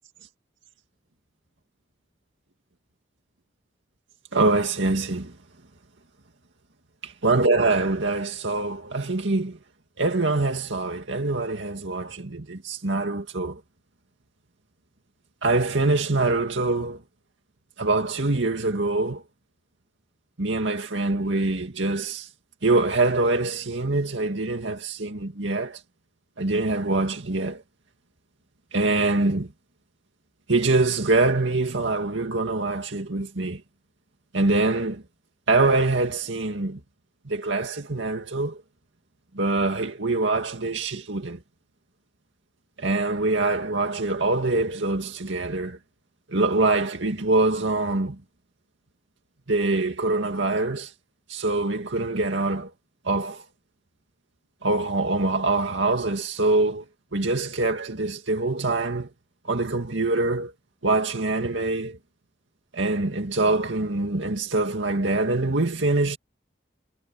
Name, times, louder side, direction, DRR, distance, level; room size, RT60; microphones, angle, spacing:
voice 1, 4.3-5.3 7.0-9.6 10.0-13.6 15.4-17.0 17.8-19.2 20.4-22.3 22.6-25.8 26.4-27.6 28.7-29.5 30.5-33.6 34.3-35.0 35.5-36.8 37.3-38.6 39.3-41.4 42.8-45.8 46.3-48.2 49.5-50.9 51.3-52.7 53.0-53.4 54.6-56.8 57.1-59.1 59.4-60.5 60.8-62.0 62.7-66.2, right 2 dB, 85° right, 2.1 m, -24 dB
head